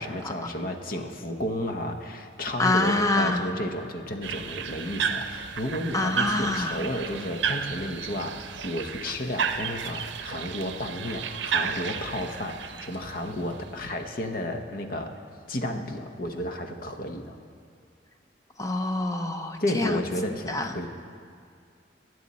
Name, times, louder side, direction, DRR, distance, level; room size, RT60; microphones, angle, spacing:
voice 1, 0.0-15.1 15.5-17.4 19.6-20.9, left 1 dB, 50° left, 5 dB, 0.9 m, -32 dB
voice 2, 2.6-3.5 5.9-6.8 18.6-20.0 20.5-20.7, left 2 dB, 20° left, 6 dB, 0.7 m, -26 dB
sound 1, 4.2-13.9, right 6 dB, 75° right, 0.6 m, -33 dB
21.0 x 8.0 x 4.2 m, 2.2 s
head